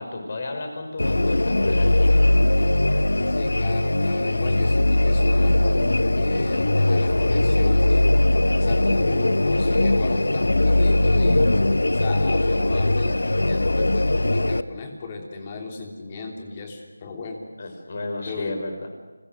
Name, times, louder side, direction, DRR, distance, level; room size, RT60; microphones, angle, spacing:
voice 1, 0.0-2.3 17.6-18.9, left 2 dB, 40° left, 6 dB, 5.5 m, -33 dB
sound 1, 1.0-14.6, left 1 dB, 80° left, 1.0 m, -20 dB
voice 2, 3.3-8.0 8.6-11.5 11.9-17.4 18.2-18.6, left 3 dB, 20° left, 3 dB, 3.2 m, -35 dB
30.0 x 22.5 x 6.7 m, 1.3 s
figure-of-eight pair, 170°, 0 cm